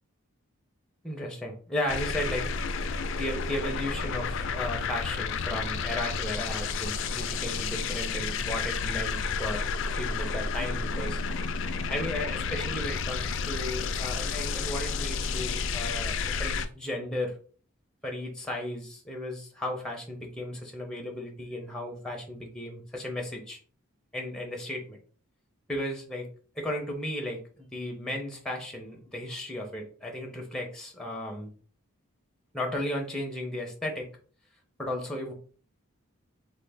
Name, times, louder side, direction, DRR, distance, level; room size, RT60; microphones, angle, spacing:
voice 1, 1.0-2.5 2.8-9.6 10.0-11.2 11.6-17.4 18.0-23.6 24.1-25.0 25.7-26.3 26.6-31.5 32.5-34.1 34.8-35.3, left 1 dB, 5° left, 1 dB, 0.5 m, -35 dB
sound 1, 1.9-16.7, left 5 dB, 60° left, 0.3 m, -31 dB
3.2 x 2.1 x 3.3 m, 0.42 s
head